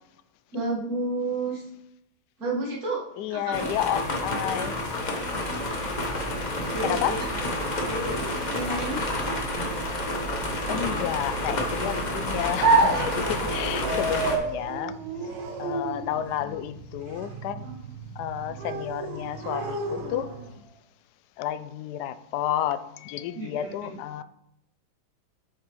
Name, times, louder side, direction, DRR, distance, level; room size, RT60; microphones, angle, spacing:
voice 1, 0.5-1.6 2.4-3.7 4.4-4.5 6.7-7.3 7.8-9.0 23.3-23.7, right 2 dB, 45° right, 2.2 m, -31 dB
voice 2, 3.2-4.7 6.8-7.2 10.7-14.9 15.6-17.7 18.2-20.3 21.4-24.2, left 11 dB, 80° left, 0.9 m, -31 dB
sound 1, 3.5-14.4, left 1 dB, 30° left, 0.8 m, -29 dB
sound 2, 12.6-20.6, right 3 dB, 80° right, 1.9 m, -29 dB
8.2 x 6.9 x 3.1 m
omnidirectional pair, 2.3 m